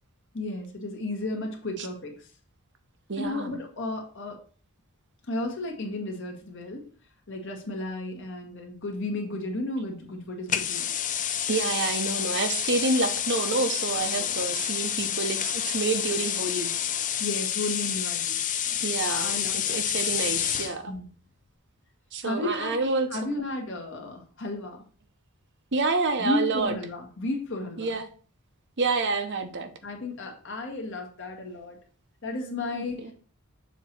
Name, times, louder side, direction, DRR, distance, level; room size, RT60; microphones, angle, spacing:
voice 1, 0.3-2.3 3.2-4.4 5.3-6.9 7.3-10.9 14.1-14.4 17.2-18.4 18.7-18.8 19.1-20.2 20.9-21.1 22.2-22.8 23.1-24.8 26.2-27.9 29.8-31.8 32.2-33.1, left 2 dB, 55° left, 1.8 m, -33 dB
voice 2, 3.1-3.6 11.5-16.7 18.8-20.9 22.1-23.1 25.7-26.7 27.8-28.1 28.8-29.7 32.7-33.1, right 3 dB, 55° right, 0.8 m, -28 dB
sound 1, 10.5-20.8, left 10 dB, 35° left, 0.5 m, -29 dB
7.2 x 3.0 x 5.9 m
head